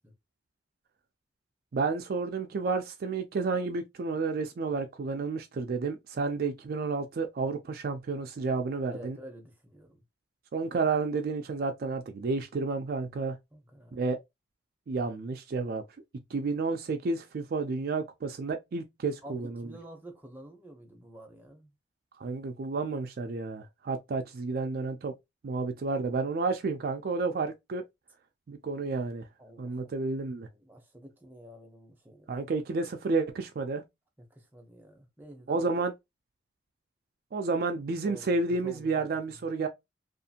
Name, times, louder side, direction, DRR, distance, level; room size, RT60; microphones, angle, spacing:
voice 1, 1.7-9.2 10.5-13.4 13.9-14.2 14.9-15.8 16.3-19.7 22.2-25.1 25.4-27.8 28.5-29.2 29.6-30.5 32.3-33.8 35.5-35.9 37.3-39.7, right 4 dB, 55° right, 0.4 m, -31 dB
voice 2, 8.9-10.0 13.5-14.1 19.2-21.7 29.4-29.9 30.5-32.4 34.3-35.7 38.0-38.4 38.6-38.9, equal, 10° right, 0.7 m, -49 dB
2.5 x 2.4 x 2.7 m
head